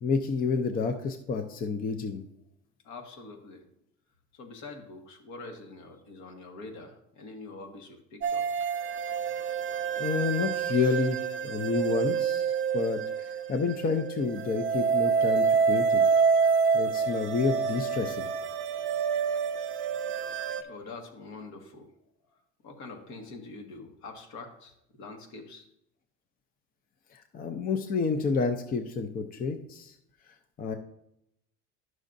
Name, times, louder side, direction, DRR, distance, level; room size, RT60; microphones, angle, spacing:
voice 1, 0.0-2.2 9.9-16.1 16.7-18.3 27.1-29.9 30.6-30.8, left 4 dB, 30° left, 7 dB, 0.5 m, -29 dB
voice 2, 2.8-3.6 4.3-8.5 10.7-11.0 19.1-19.4 20.6-21.9 22.3-22.4 22.6-25.6, left 3 dB, 65° left, 4 dB, 1.5 m, -45 dB
sound 1, 8.2-20.6, right 6 dB, 40° right, 0.6 m, -27 dB
11.0 x 6.3 x 2.6 m, 0.78 s
cardioid pair, 125°, 31 cm